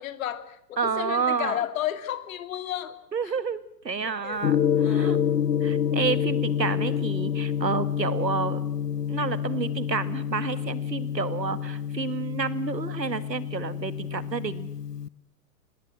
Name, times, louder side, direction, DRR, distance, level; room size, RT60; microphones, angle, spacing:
voice 1, 0.0-3.0 3.2-3.3 4.0-4.5 4.8-5.3, left 11 dB, 55° left, 11 dB, 2.7 m, -33 dB
voice 2, 0.8-1.6 3.1-3.6 3.8-4.6 4.9-5.2 5.6-8.6 9.1-14.7, right 5 dB, 85° right, 15 dB, 2.0 m, -29 dB
Gong, 4.4-15.1, left 8 dB, 75° left, 0.9 m, -28 dB
26.5 x 21.0 x 7.7 m, 0.78 s
figure-of-eight pair, 105°, 49 cm